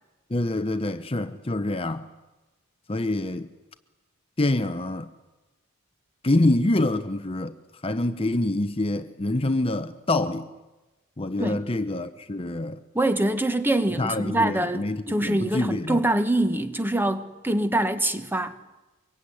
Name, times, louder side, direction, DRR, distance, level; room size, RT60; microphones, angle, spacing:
voice 1, 0.3-2.1 2.9-3.5 4.4-5.1 6.2-7.5 7.8-10.5 11.2-12.8 14.0-16.0, left 2 dB, 25° left, 0.8 m, -26 dB
voice 2, 12.9-18.6, right 1 dB, 10° right, 1.5 m, -24 dB
24.5 x 23.0 x 9.9 m
head